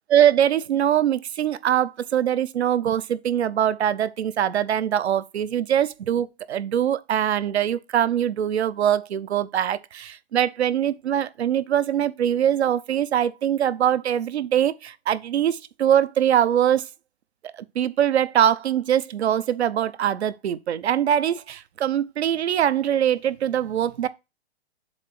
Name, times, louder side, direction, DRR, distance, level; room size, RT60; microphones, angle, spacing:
voice 1, 0.1-16.8 17.5-24.1, right 10 dB, 80° right, 0.7 m, -22 dB
7.3 x 2.8 x 5.9 m
hypercardioid pair, 140°, 32 cm